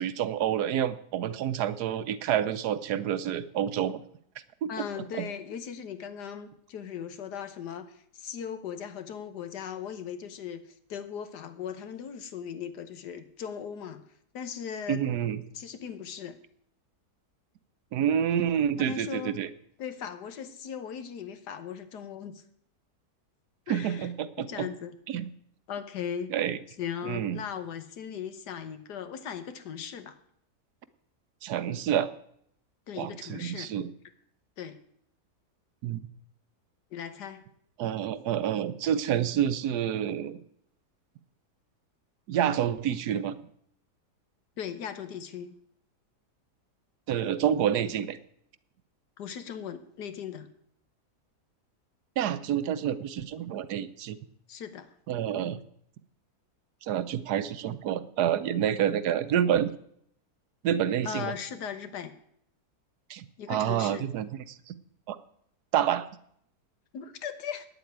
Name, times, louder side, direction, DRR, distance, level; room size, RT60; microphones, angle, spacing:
voice 1, 0.0-4.0 4.6-4.7 5.1-5.3 14.9-15.4 17.9-19.5 23.7-24.7 25.1-25.3 26.3-26.6 27.0-27.4 31.4-32.1 33.0-33.9 35.8-36.0 37.8-40.4 42.3-43.3 47.1-48.2 52.2-54.2 55.1-55.6 56.8-59.7 60.6-61.3 63.1-64.7 65.1-65.2 65.7-66.1, right 9 dB, 75° right, 14 dB, 1.2 m, -28 dB
voice 2, 4.7-14.0 14.3-15.0 15.5-16.4 18.8-19.3 19.8-22.4 23.7-24.1 24.4-25.0 25.7-26.3 26.8-30.2 32.9-33.7 34.6-34.8 36.9-37.4 44.6-45.5 49.2-50.5 54.5-54.9 61.0-62.1 63.4-64.1 66.9-67.7, left 8 dB, 80° left, 9 dB, 1.6 m, -38 dB
9.4 x 7.9 x 9.2 m, 0.70 s
omnidirectional pair, 1.8 m